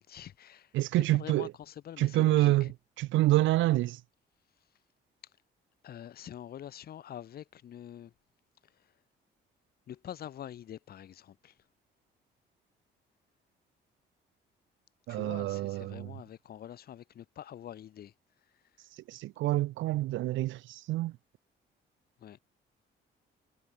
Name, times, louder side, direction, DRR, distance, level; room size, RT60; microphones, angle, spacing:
voice 1, 0.0-2.7 5.8-8.1 8.6-8.9 9.9-11.6 15.1-18.1 22.2-22.4, left 10 dB, 50° left, 0.6 m, -45 dB
voice 2, 0.7-1.5 2.0-2.7 3.0-4.0 15.1-16.1 19.1-21.1, right 16 dB, 75° right, 0.4 m, -27 dB
cardioid pair, 90°, 20 cm